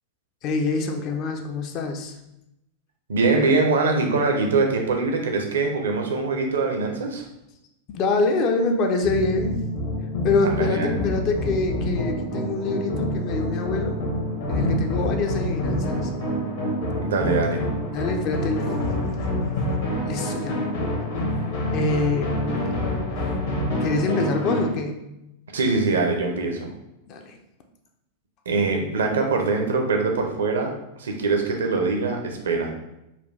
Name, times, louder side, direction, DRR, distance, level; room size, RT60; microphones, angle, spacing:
voice 1, 0.4-2.2 7.9-9.6 10.2-14.0 14.5-16.4 17.9-19.0 20.1-20.7 21.7-22.4 23.2-23.4 23.8-25.0 27.1-27.4, left 3 dB, 40° left, 5 dB, 0.5 m, -25 dB
voice 2, 3.1-7.2 10.4-10.9 17.0-17.6 25.5-26.7 28.5-30.7 31.0-32.7, right 3 dB, 65° right, 2 dB, 0.6 m, -23 dB
sound 1, 9.0-24.7, left 1 dB, 60° left, 1.1 m, -27 dB
4.2 x 2.3 x 3.2 m, 0.87 s
figure-of-eight pair, 90°, 0 cm